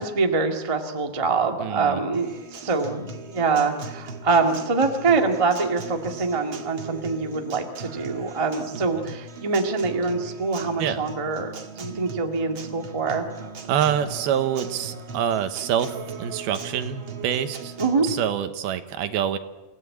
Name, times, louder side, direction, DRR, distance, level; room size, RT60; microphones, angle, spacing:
voice 1, 0.0-13.2 17.8-18.1, right 4 dB, 20° right, 3 dB, 0.9 m, -24 dB
voice 2, 1.6-2.0 9.0-9.1 10.8-11.0 13.7-17.7 18.0-19.4, right 9 dB, 80° right, 10 dB, 3.1 m, -26 dB
Acoustic guitar, 2.1-18.1, right 4 dB, 40° right, 2.1 m, -39 dB
28.0 x 16.5 x 8.6 m, 1.1 s
omnidirectional pair, 4.3 m